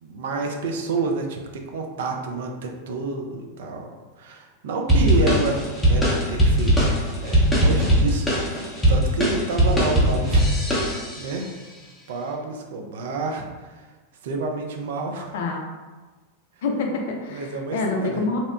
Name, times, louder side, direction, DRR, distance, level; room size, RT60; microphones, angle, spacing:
voice 1, 0.0-3.9 4.2-10.5 10.8-11.5 12.1-13.9 14.2-15.3 17.3-18.2, right 3 dB, 55° right, 2 dB, 0.3 m, -29 dB
sound 1, 4.9-11.3, equal, 10° left, 0.6 m, -20 dB
voice 2, 15.3-15.7 16.6-18.4, left 3 dB, 55° left, 2 dB, 0.4 m, -26 dB
2.7 x 2.0 x 2.3 m, 1.3 s
figure-of-eight pair, 90°, 0 cm